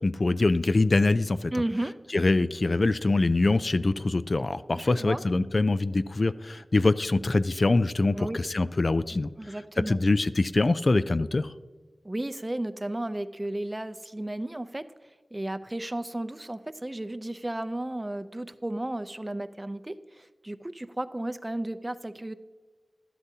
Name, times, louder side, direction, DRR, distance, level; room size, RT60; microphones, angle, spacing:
voice 1, 0.0-1.5 2.1-9.6 9.9-11.5, left 2 dB, 50° left, 13 dB, 0.3 m, -24 dB
voice 2, 1.5-2.0 4.7-5.2 8.2-8.4 9.4-10.0 12.0-14.8 15.3-22.3, right 1 dB, 25° right, 12 dB, 0.5 m, -33 dB
12.5 x 11.5 x 2.8 m, 1.4 s
wide cardioid pair, 55°, 0 cm